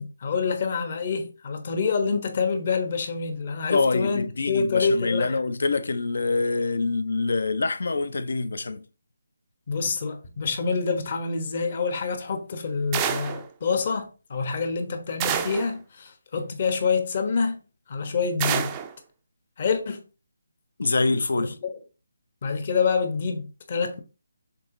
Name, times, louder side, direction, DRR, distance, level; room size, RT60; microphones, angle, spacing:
voice 1, 0.0-5.3 9.7-17.6 17.9-18.8 19.6-20.0 21.4-21.7 22.4-24.0, left 5 dB, 40° left, 1.2 m, -27 dB
voice 2, 3.7-8.8 20.8-21.6, left 3 dB, 65° left, 0.7 m, -25 dB
sound 1, 12.9-13.5 15.2-15.7 18.4-18.9, right 9 dB, 15° right, 0.4 m, -27 dB
6.5 x 4.0 x 3.8 m
figure-of-eight pair, 165°, 0 cm